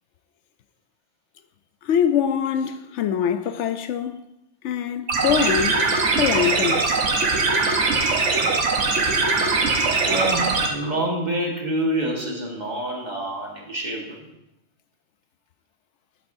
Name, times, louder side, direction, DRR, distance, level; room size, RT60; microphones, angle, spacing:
voice 1, 1.8-4.2 4.6-5.8 6.2-7.0, left 8 dB, 80° left, 0.9 m, -23 dB
sound 1, 5.1-10.7, right 3 dB, 85° right, 1.4 m, -21 dB
voice 2, 10.1-14.3, right 1 dB, 40° right, 1.7 m, -27 dB
12.0 x 8.3 x 2.6 m
omnidirectional pair, 1.2 m